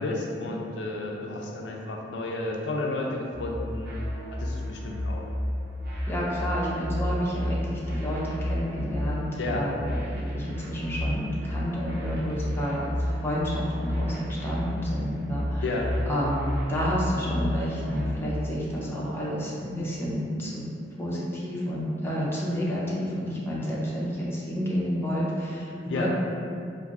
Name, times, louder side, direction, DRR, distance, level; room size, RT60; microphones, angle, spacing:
voice 1, 0.0-3.9 4.3-5.3 9.4-9.7 15.6-15.9 25.9-26.1, left 2 dB, 75° left, 0 dB, 0.4 m, -32 dB
sound 1, 3.3-18.1, left 1 dB, 60° right, 0.9 m, -32 dB
voice 2, 6.1-12.9 13.2-15.6 16.1-16.4 16.7-20.6 21.0-26.1, equal, 15° left, -7 dB, 0.6 m, -30 dB
2.5 x 2.4 x 4.0 m, 2.5 s
head